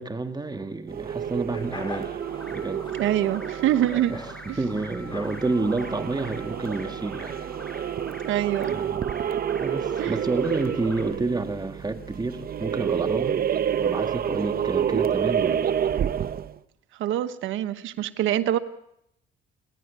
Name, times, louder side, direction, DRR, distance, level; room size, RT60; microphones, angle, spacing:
voice 1, 0.0-2.2 2.5-2.9 3.9-7.4 8.7-9.1 9.6-15.7, right 3 dB, 20° right, 7 dB, 1.7 m, -30 dB
sound 1, 0.9-16.6, right 9 dB, 50° right, 0.7 m, -29 dB
sound 2, 1.5-6.6, left 2 dB, 25° left, 3.9 m, -43 dB
sound 3, 2.2-11.0, equal, 5° left, 5.9 m, -44 dB
voice 2, 2.9-4.2 4.5-4.6 8.3-8.8 10.0-10.2 17.0-18.6, right 12 dB, 85° right, 10 dB, 1.1 m, -25 dB
29.5 x 11.0 x 8.3 m, 0.77 s
cardioid pair, 90°, 20 cm